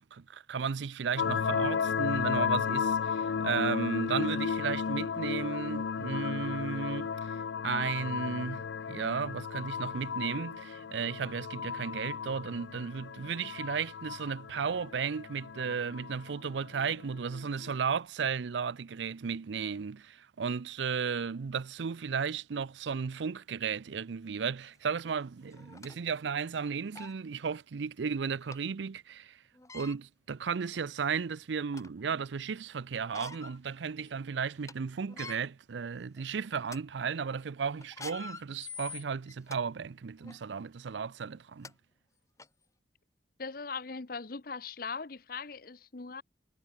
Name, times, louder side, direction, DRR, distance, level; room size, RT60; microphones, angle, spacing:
voice 1, 0.0-29.4 29.7-41.7, right 6 dB, 80° right, 0.5 m, -34 dB
sound 1, 1.2-17.7, left 6 dB, 85° left, 0.4 m, -34 dB
sound 2, 24.8-24.9 25.5-26.0 26.6-26.7 26.9-27.2 28.5-28.6 29.5-30.0 30.7-30.8 31.3-32.0 33.0-33.6 34.0-34.1 34.5-34.7 35.1-35.4 36.0-36.2 36.6-36.8 37.8-39.6 40.2-40.4 41.3-41.4 41.6-41.7 42.4-42.5, left 4 dB, 15° left, 1.1 m, -45 dB
voice 2, 43.4-46.2, left 4 dB, 50° left, 0.9 m, -40 dB
head